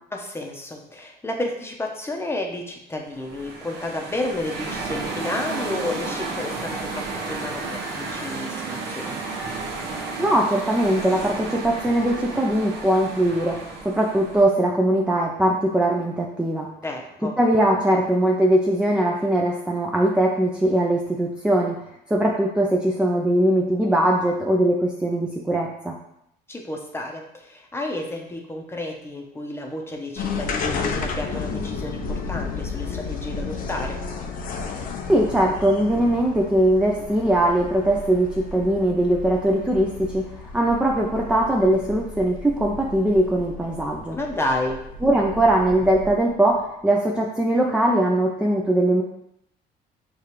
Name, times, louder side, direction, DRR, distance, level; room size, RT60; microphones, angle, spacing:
voice 1, 0.1-9.2 16.8-17.4 26.5-34.0 44.1-44.8, left 1 dB, 15° left, 1 dB, 0.7 m, -31 dB
sound 1, 3.1-14.4, right 3 dB, 80° right, 0.9 m, -32 dB
voice 2, 10.2-16.7 17.4-21.8 22.1-25.9 35.1-44.2 45.0-49.0, right 1 dB, 5° right, -2 dB, 0.4 m, -21 dB
sound 2, 30.1-46.3, left 4 dB, 55° left, 0.5 m, -33 dB
6.5 x 2.4 x 2.9 m, 0.79 s
cardioid pair, 110°, 17 cm